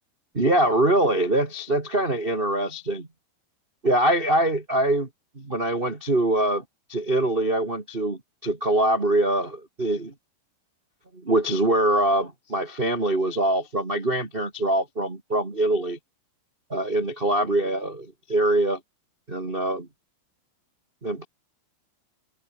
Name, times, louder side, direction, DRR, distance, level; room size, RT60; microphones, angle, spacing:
voice 1, 0.3-3.1 3.8-5.1 5.3-6.6 6.9-10.1 11.2-16.0 16.7-18.8 19.3-19.9 21.0-21.2, right 1 dB, 30° right, 0.9 m, -23 dB
omnidirectional pair, 5.3 m